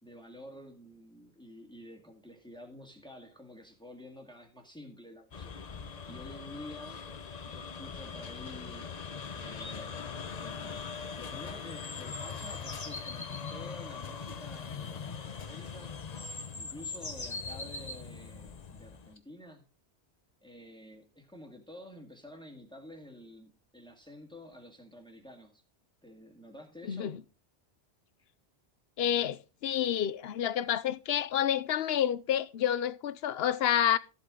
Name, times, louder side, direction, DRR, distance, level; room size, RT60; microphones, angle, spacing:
voice 1, 0.0-5.5 6.1-7.0 7.4-8.9 9.3-15.9 16.5-19.7 20.4-25.6 26.0-27.2, left 1 dB, 5° left, 2.0 m, -50 dB
sound 1, 5.3-19.1, left 6 dB, 45° left, 0.8 m, -42 dB
sound 2, 9.6-9.8 11.7-13.6 15.5-15.6 16.0-18.0 19.2-19.3, left 2 dB, 25° left, 1.2 m, -42 dB
voice 2, 26.9-27.2 29.0-34.0, left 10 dB, 70° left, 0.9 m, -29 dB
13.5 x 8.2 x 3.8 m
omnidirectional pair, 1.1 m